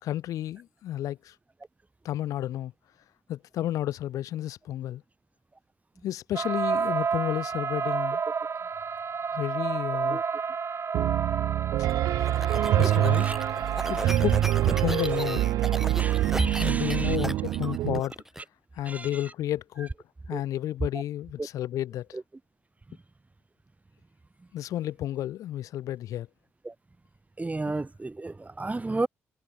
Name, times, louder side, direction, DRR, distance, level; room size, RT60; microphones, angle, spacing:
voice 1, 0.0-1.3 2.0-2.7 3.3-5.0 6.0-8.2 9.3-10.2 12.7-13.3 13.9-15.4 16.6-18.1 18.8-19.9 20.3-22.1 24.5-26.3, left 13 dB, 80° left, 1.9 m, -31 dB
sound 1, 6.3-14.1, right 6 dB, 50° right, 1.8 m, -30 dB
Piano, 10.9-18.0, right 14 dB, 80° right, 0.8 m, -25 dB
sound 2, 11.9-18.4, right 1 dB, 5° right, 1.0 m, -37 dB
voice 2, 12.5-13.5 14.0-14.2 15.0-15.4 15.9-17.2 18.8-19.3 20.3-20.4 20.9-21.0 21.4-21.5 22.1-22.2 22.9-23.0 24.4-24.5 26.6-26.7 27.4-29.1, right 2 dB, 25° right, 2.5 m, -34 dB
supercardioid pair, 50°, 6 cm